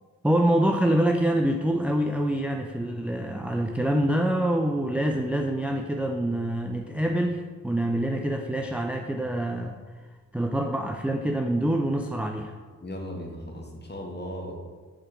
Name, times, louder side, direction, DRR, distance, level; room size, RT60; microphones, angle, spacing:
voice 1, 0.2-9.8 10.3-12.5, right 1 dB, 5° right, 3 dB, 0.4 m, -25 dB
voice 2, 12.8-14.5, equal, 30° left, 0 dB, 1.5 m, -37 dB
5.1 x 4.4 x 5.5 m, 1.4 s
cardioid pair, 65°, 35 cm